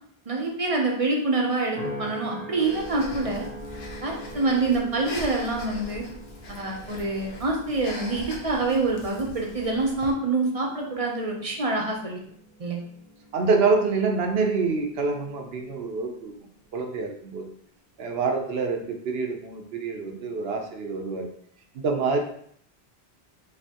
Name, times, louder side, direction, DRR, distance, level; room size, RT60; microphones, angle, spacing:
voice 1, 0.3-3.5 4.0-6.0 6.5-12.2 12.6-12.8, right 3 dB, 40° right, 0 dB, 0.8 m, -26 dB
sound 1, 1.8-16.2 16.8-17.2, equal, 60° left, 1.6 m, -43 dB
Breathing, 2.6-10.1, left 2 dB, 75° left, 1.0 m, -41 dB
voice 2, 13.3-16.3 16.7-17.5 18.0-21.3 21.7-22.2, right 4 dB, 75° right, 3 dB, 1.0 m, -26 dB
5.5 x 2.9 x 2.9 m, 0.65 s
omnidirectional pair, 1.0 m